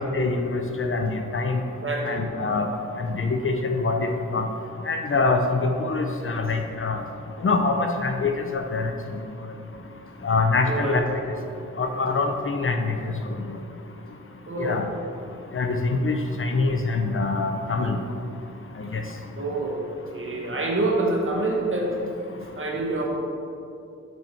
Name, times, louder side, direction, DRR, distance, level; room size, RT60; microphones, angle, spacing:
voice 1, 0.0-1.6 2.0-2.7 3.0-4.5 4.9-7.0 7.4-8.9 10.2-11.0 11.8-13.0 13.2-13.3 14.6-14.9 15.5-18.0 18.8-19.0, left 3 dB, 45° left, 5 dB, 0.5 m, -24 dB
voice 2, 1.8-2.2 10.6-11.0 14.5-14.8 19.4-19.9 20.1-22.0 22.4-23.1, right 2 dB, 45° right, -1 dB, 1.1 m, -26 dB
6.1 x 4.5 x 4.3 m, 2.6 s
wide cardioid pair, 95°, 30 cm